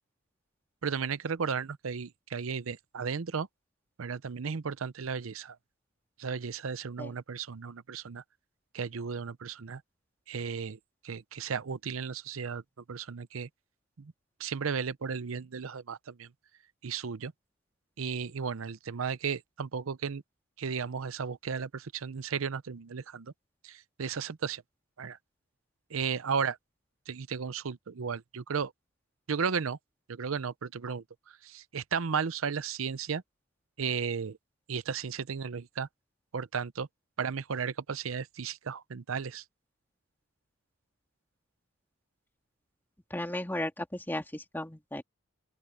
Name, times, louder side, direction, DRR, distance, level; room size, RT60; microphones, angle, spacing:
voice 1, 0.8-3.5 4.0-5.6 6.2-8.2 8.7-9.8 10.3-10.8 11.0-12.6 12.9-13.5 14.0-14.1 14.4-16.3 16.8-17.3 18.0-20.2 20.6-23.3 23.6-24.6 25.0-25.2 25.9-26.6 27.1-28.7 29.3-29.8 30.1-31.0 31.4-33.2 33.8-34.4 34.7-35.9 36.3-36.9 37.2-39.4, right 6 dB, 90° right, 0.6 m, -34 dB
voice 2, 43.1-45.0, left 1 dB, 10° left, 2.5 m, -35 dB
open air
head